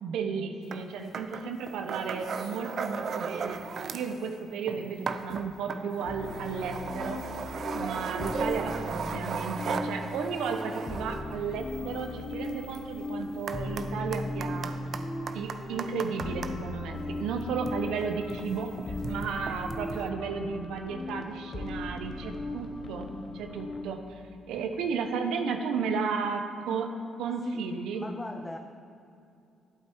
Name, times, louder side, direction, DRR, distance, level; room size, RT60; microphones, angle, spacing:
voice 1, 0.0-3.6 3.9-7.2 7.7-14.7 15.3-23.1 23.3-24.0 24.5-26.4 26.7-26.9 27.2-28.0, right 5 dB, 85° right, 5 dB, 0.9 m, -33 dB
sound 1, 0.7-0.8 1.1-4.2 4.5-16.5 17.3-20.1, right 5 dB, 55° right, 0.7 m, -37 dB
sound 2, 6.1-23.8, left 2 dB, 35° left, 1.1 m, -37 dB
voice 2, 27.9-28.6, left 1 dB, 15° left, 5 dB, 0.7 m, -39 dB
12.0 x 7.9 x 4.6 m, 2.6 s
cardioid pair, 75°, 0 cm